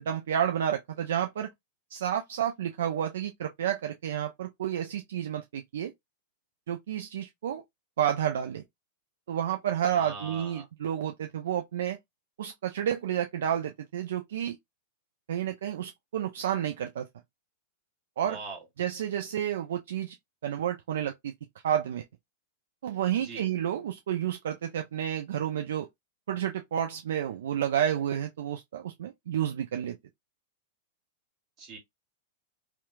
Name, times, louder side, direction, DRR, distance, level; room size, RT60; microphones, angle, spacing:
voice 1, 0.0-1.5 1.9-5.9 6.7-7.6 8.0-8.6 9.3-12.0 12.4-14.6 15.3-17.1 18.2-18.4 18.8-20.2 20.4-21.3 21.6-22.0 22.8-25.9 26.3-30.0, right 10 dB, 70° right, 0.3 m, -30 dB
voice 2, 9.9-10.7 18.2-18.6 23.2-23.4 31.6-31.8, right 4 dB, 40° right, 1.2 m, -41 dB
2.9 x 2.1 x 2.2 m
hypercardioid pair, 105°, 0 cm